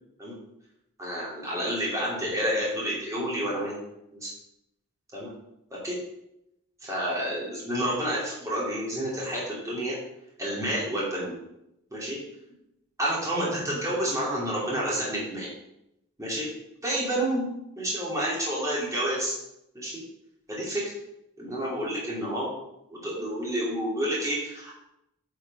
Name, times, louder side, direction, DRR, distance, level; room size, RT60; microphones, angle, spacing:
voice 1, 1.0-3.7 4.1-4.3 5.1-5.3 5.8-6.0 6.8-10.0 10.4-11.4 11.9-12.2 13.0-15.5 16.2-16.5 16.8-17.5 17.8-19.4 19.7-19.9 20.5-20.8 21.4-22.5 22.9-24.9, right 1 dB, 15° right, -6 dB, 2.7 m, -29 dB
8.9 x 5.0 x 5.4 m, 0.84 s
head